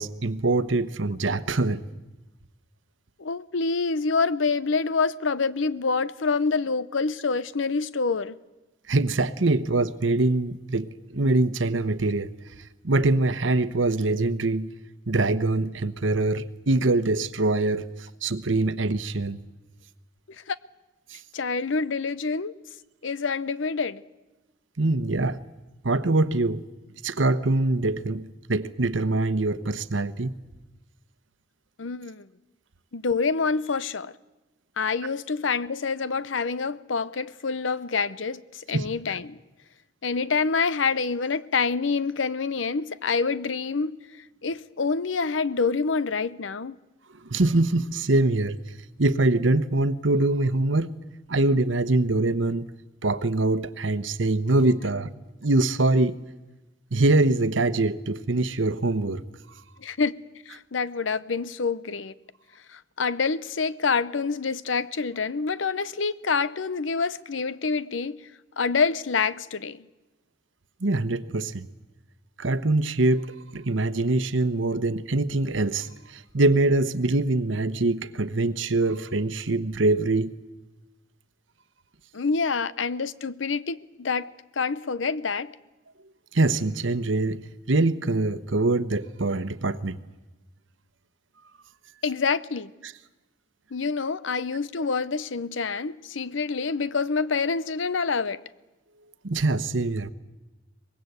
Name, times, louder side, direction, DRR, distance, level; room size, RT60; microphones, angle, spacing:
voice 1, 0.0-1.8 8.9-12.3 12.8-14.7 15.1-19.4 21.1-21.2 24.8-25.4 25.8-26.6 27.0-30.3 38.7-38.9 47.2-48.6 49.0-50.9 51.3-52.7 53.0-55.1 55.4-56.2 56.9-59.2 70.8-71.7 72.4-80.3 86.3-87.4 87.7-90.0 92.8-92.9 99.2-100.1, right 2 dB, 85° right, 1.0 m, -24 dB
voice 2, 3.2-8.4 20.5-20.6 21.3-22.5 23.0-24.0 31.8-32.3 32.9-34.1 34.8-39.4 40.0-44.0 44.4-46.8 59.8-60.1 60.5-62.1 62.7-68.2 68.6-69.8 82.1-85.5 92.0-92.7 93.7-98.4, left 4 dB, 85° left, 0.8 m, -27 dB
24.0 x 20.5 x 8.1 m
head